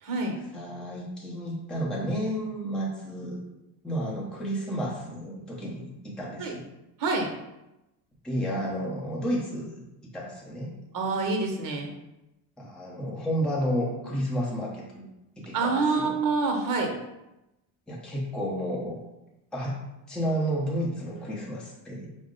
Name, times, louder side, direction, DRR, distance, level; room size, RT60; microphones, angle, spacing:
voice 1, 0.0-0.4 6.4-6.5 7.0-7.3 10.9-11.9 15.5-16.9, right 3 dB, 40° right, 2 dB, 1.0 m, -26 dB
voice 2, 0.5-3.4 3.8-6.6 8.2-9.8 10.1-10.7 12.6-15.1 15.4-16.2 17.9-19.0 19.5-19.8 20.1-22.1, equal, ahead, -5 dB, 0.8 m, -31 dB
5.9 x 2.1 x 3.7 m, 0.94 s
cardioid pair, 130°, 49 cm